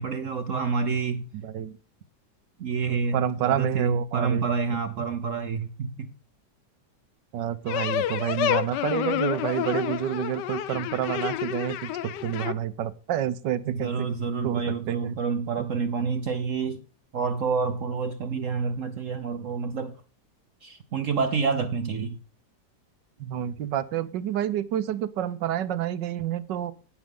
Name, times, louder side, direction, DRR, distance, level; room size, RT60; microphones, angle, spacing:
voice 1, 0.0-1.3 2.6-6.1 13.6-16.8 17.1-20.0 20.6-22.2, right 5 dB, 60° right, 0.9 m, -28 dB
voice 2, 1.4-1.8 2.9-4.5 7.3-14.1 14.4-15.2 15.6-15.7 23.2-26.7, right 11 dB, 85° right, 1.5 m, -29 dB
sound 1, 7.7-12.5, left 11 dB, 75° left, 1.4 m, -29 dB
11.5 x 9.3 x 3.6 m
omnidirectional pair, 1.9 m